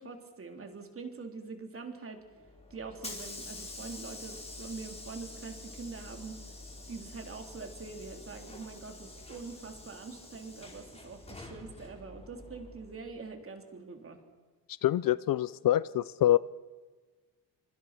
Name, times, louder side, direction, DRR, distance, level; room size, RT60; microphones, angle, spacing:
voice 1, 0.0-2.2 2.7-6.4 6.9-14.2, right 4 dB, 35° right, 5 dB, 3.6 m, -44 dB
Hiss / Sliding door, 2.3-13.2, left 2 dB, 15° left, 4.9 m, -47 dB
voice 2, 14.8-16.4, left 13 dB, 55° left, 18 dB, 0.7 m, -25 dB
25.5 x 25.0 x 6.1 m, 1.3 s
cardioid pair, 125°, 40 cm